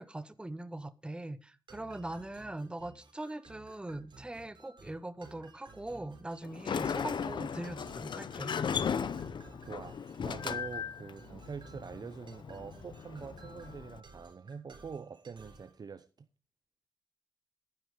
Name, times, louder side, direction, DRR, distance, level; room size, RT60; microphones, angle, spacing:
voice 1, 0.0-8.5, right 1 dB, 10° right, 0.8 m, -41 dB
sound 1, 1.7-15.7, right 3 dB, 70° right, 4.0 m, -55 dB
Sliding door, 6.4-14.0, left 7 dB, 70° left, 0.8 m, -37 dB
voice 2, 9.6-16.0, right 5 dB, 55° right, 0.8 m, -45 dB
11.5 x 10.5 x 5.1 m
wide cardioid pair, 105°, 8 cm